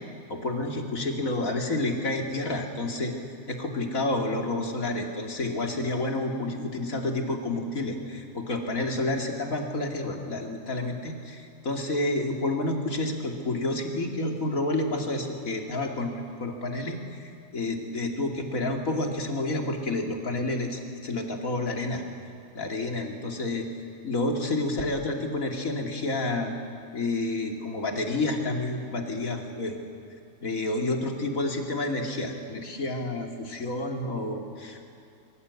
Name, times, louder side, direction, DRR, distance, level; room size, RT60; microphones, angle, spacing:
voice 1, 0.3-3.1 3.5-22.0 22.5-23.7 24.0-26.5 26.9-29.7 30.4-34.7, left 2 dB, 80° left, 3 dB, 3.1 m, -29 dB
24.0 x 24.0 x 8.4 m, 2.6 s
omnidirectional pair, 1.4 m